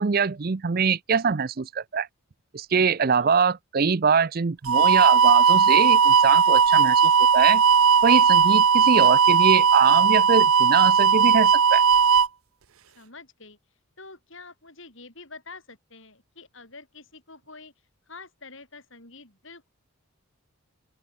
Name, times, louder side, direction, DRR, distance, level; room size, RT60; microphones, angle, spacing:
voice 1, 0.0-2.1 2.5-7.6 8.0-11.8, right 5 dB, 40° right, 0.5 m, -23 dB
sound 1, 4.7-12.3, right 6 dB, 75° right, 0.8 m, -17 dB
voice 2, 13.0-13.6 14.0-17.7 18.1-19.7, left 3 dB, 60° left, 7.5 m, -46 dB
open air
head